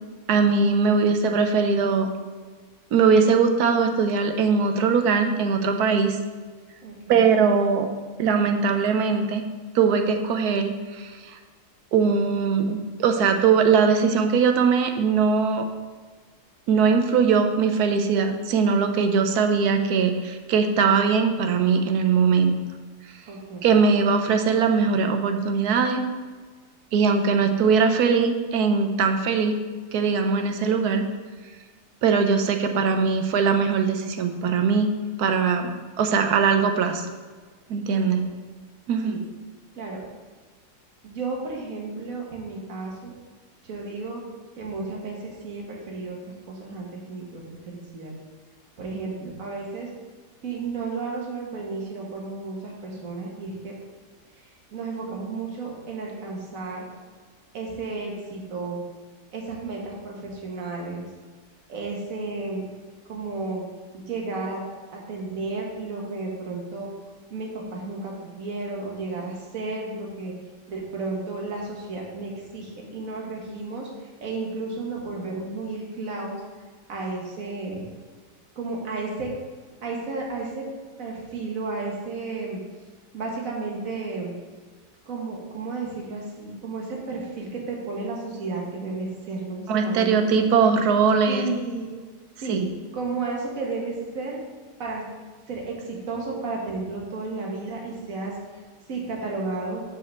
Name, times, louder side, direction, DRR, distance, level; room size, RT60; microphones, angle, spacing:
voice 1, 0.3-2.1 2.9-6.2 7.1-7.9 8.2-9.4 9.7-11.4 11.9-15.7 16.7-22.6 23.6-26.0 26.9-29.6 29.9-31.1 32.0-34.9 35.2-35.7 36.0-37.1 37.7-38.2 38.9-39.2 89.7-91.5 92.5-92.6, right 5 dB, 75° right, 6 dB, 1.2 m, -21 dB
voice 2, 6.8-7.3 23.3-23.7 37.9-38.4 39.0-39.2 39.7-40.0 41.0-43.1 43.6-44.2 44.6-46.2 46.5-48.1 48.8-49.9 50.4-53.7 54.7-56.8 57.5-58.8 59.3-61.0 61.7-62.6 63.1-63.6 63.9-64.6 64.9-66.9 67.3-70.3 70.7-73.9 74.2-76.4 76.9-77.9 78.5-79.3 79.8-80.7 81.0-82.6 83.1-84.3 85.0-90.5 91.3-91.9 92.4-92.6 92.9-94.4 94.8-95.0 95.5-98.4 98.9-99.8, right 3 dB, 55° right, -1 dB, 1.8 m, -33 dB
5.7 x 4.8 x 6.6 m, 1.4 s
omnidirectional pair, 1.8 m